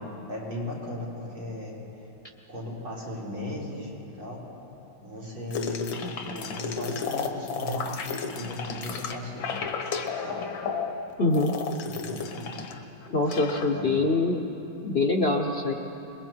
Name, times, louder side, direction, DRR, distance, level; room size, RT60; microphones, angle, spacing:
voice 1, 0.3-2.1 2.5-4.4 5.0-9.5 10.2-10.5 11.8-12.6 13.7-14.1, left 1 dB, 90° right, -3 dB, 5.7 m, -37 dB
sound 1, 5.5-12.8 13.0-13.7, left 5 dB, 75° left, 2.0 m, -33 dB
voice 2, 11.2-11.5 13.1-14.5 14.8-15.7, left 2 dB, 45° left, 3 dB, 0.9 m, -24 dB
27.5 x 21.5 x 4.6 m, 2.9 s
omnidirectional pair, 2.2 m